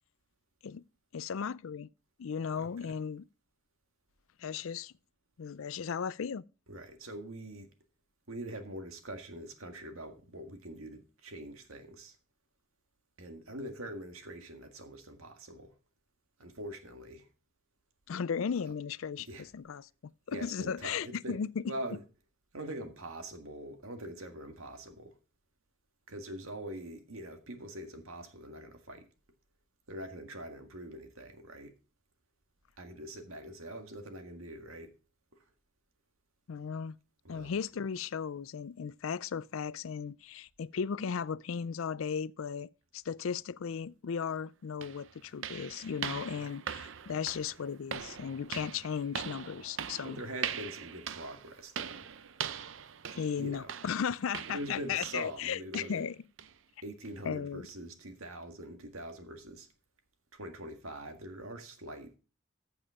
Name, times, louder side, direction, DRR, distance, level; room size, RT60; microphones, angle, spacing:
voice 1, 1.1-1.9 2.2-3.3 4.4-4.9 5.4-6.4 18.1-19.9 20.3-21.6 36.5-37.0 37.3-50.2 52.5-52.6 53.1-56.1 57.3-57.6, left 6 dB, 75° left, 0.4 m, -36 dB
voice 2, 2.5-2.9 6.7-7.7 8.3-12.1 13.2-15.7 16.4-17.3 19.3-19.5 20.3-21.4 21.7-22.0 22.5-25.2 26.1-29.1 29.9-31.7 32.8-34.9 35.4-35.5 37.2-37.6 46.4-46.5 50.0-52.1 53.4-53.7 54.5-56.0 56.8-59.7 60.3-62.1, right 1 dB, 80° right, 1.7 m, -43 dB
sound 1, 44.2-44.3 44.8-55.4 55.7-56.0 56.4-56.6 57.0-57.1 57.7-57.8, right 8 dB, 65° right, 0.6 m, -42 dB
14.0 x 7.1 x 3.6 m
head